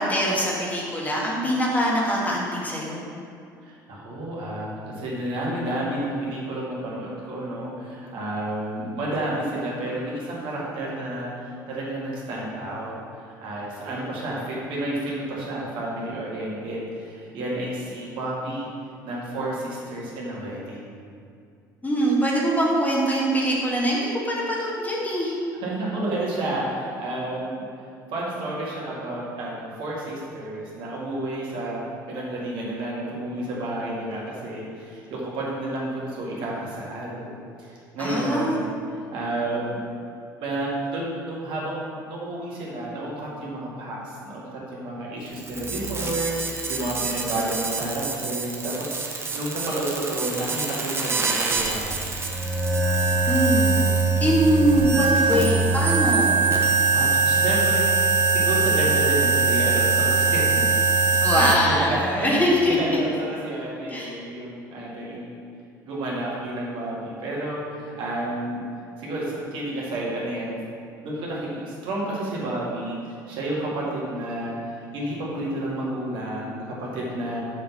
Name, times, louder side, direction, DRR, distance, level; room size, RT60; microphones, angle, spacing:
voice 1, 0.0-3.1 21.8-25.3 38.0-38.7 53.3-53.7 54.2-56.3 61.2-62.8 63.9-64.1, equal, 15° left, -4 dB, 1.8 m, -23 dB
voice 2, 3.6-12.9 13.2-18.7 19.0-20.9 25.5-27.8 28.1-31.8 32.1-37.3 37.6-38.7 39.1-39.8 40.4-52.1 56.9-60.4 61.3-65.3 65.8-68.6 69.0-70.6 71.0-77.4, right 1 dB, 50° right, -5 dB, 2.1 m, -31 dB
sound 1, 45.3-61.6, right 4 dB, 25° right, 1.1 m, -23 dB
6.3 x 5.9 x 5.6 m, 2.4 s
figure-of-eight pair, 60°, 11 cm